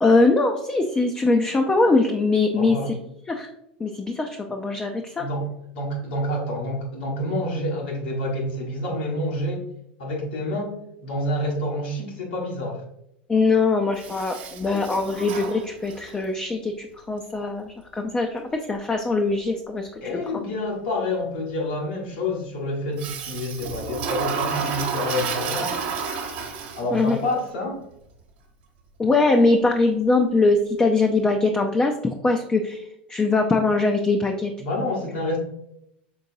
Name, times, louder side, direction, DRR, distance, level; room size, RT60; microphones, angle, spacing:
voice 1, 0.0-2.9 3.3-3.5 3.8-5.3 13.3-20.2 26.9-27.2 29.0-34.5, left 3 dB, 15° left, 3 dB, 0.5 m, -22 dB
voice 2, 2.5-2.9 5.2-5.5 5.7-9.7 10.0-10.8 11.0-12.8 20.0-25.9 26.8-27.8 34.6-35.4, left 1 dB, 75° left, -2 dB, 1.5 m, -28 dB
Toilet flush, 14.0-16.2 23.0-27.1, right 6 dB, 65° right, 1.0 m, -30 dB
5.3 x 3.7 x 2.7 m, 0.80 s
hypercardioid pair, 90°, 6 cm